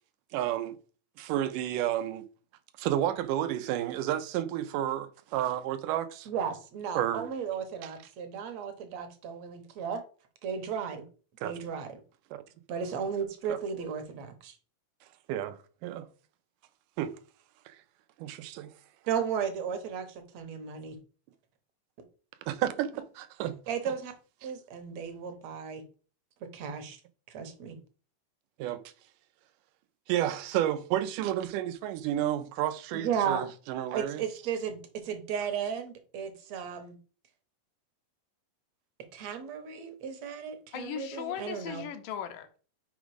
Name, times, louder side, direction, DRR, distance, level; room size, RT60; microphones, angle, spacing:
voice 1, 0.3-0.8 1.2-2.3 2.8-6.3 7.0-7.2 11.4-11.5 12.3-12.4 15.3-16.1 17.0-17.1 17.7-17.8 18.2-18.7 22.5-23.6 28.6-28.8 30.1-34.2, right 12 dB, 90° right, 2.2 m, -31 dB
voice 2, 6.3-10.0 10.4-11.0 11.4-12.0 12.7-14.6 19.1-21.0 23.7-24.1 24.4-25.8 26.4-27.0 27.3-27.8 32.9-33.5 33.9-37.0 39.1-41.8, right 7 dB, 65° right, 2.0 m, -35 dB
voice 3, 40.7-42.6, left 9 dB, 85° left, 2.5 m, -38 dB
6.1 x 5.1 x 4.8 m
omnidirectional pair, 3.7 m